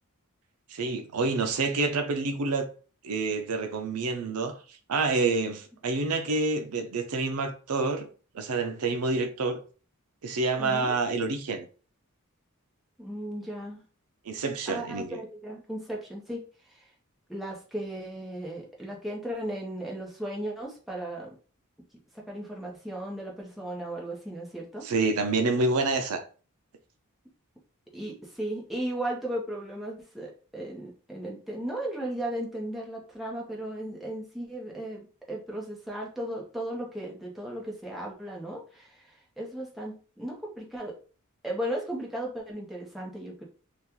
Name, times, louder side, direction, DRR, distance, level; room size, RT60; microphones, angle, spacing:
voice 1, 0.7-2.7 3.0-4.5 4.9-8.1 8.3-9.6 10.2-11.7 14.3-15.1 24.8-26.2, right 3 dB, 80° right, 0.5 m, -28 dB
voice 2, 10.6-11.0 13.0-13.8 14.7-16.9 17.3-21.3 22.1-24.9 27.9-40.9 41.4-43.4, right 1 dB, ahead, 0.8 m, -36 dB
2.9 x 2.3 x 3.5 m
head